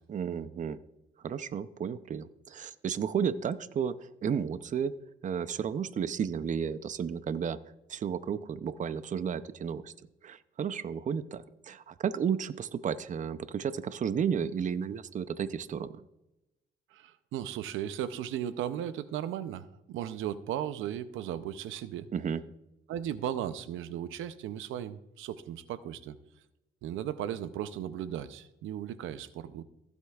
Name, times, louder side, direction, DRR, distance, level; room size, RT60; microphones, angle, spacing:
voice 1, 0.1-0.8 1.2-4.9 5.2-7.6 7.9-9.9 10.2-15.9 22.1-22.4, right 7 dB, 40° right, 14 dB, 0.5 m, -33 dB
voice 2, 16.9-22.1 22.9-26.1 26.8-29.6, right 10 dB, 85° right, 14 dB, 0.6 m, -36 dB
15.5 x 8.0 x 2.4 m, 0.94 s
cardioid pair, 90°, 20 cm